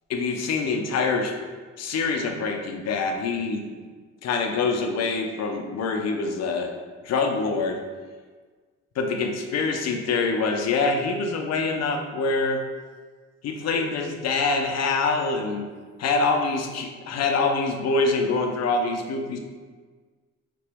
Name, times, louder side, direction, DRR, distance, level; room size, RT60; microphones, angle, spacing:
voice 1, 0.1-1.3 1.8-3.7 4.2-6.7 7.0-7.8 9.0-12.6 13.4-15.7 16.0-19.4, left 4 dB, 60° left, 3 dB, 0.6 m, -25 dB
3.4 x 2.9 x 3.4 m, 1.5 s
cardioid pair, 90°, 30 cm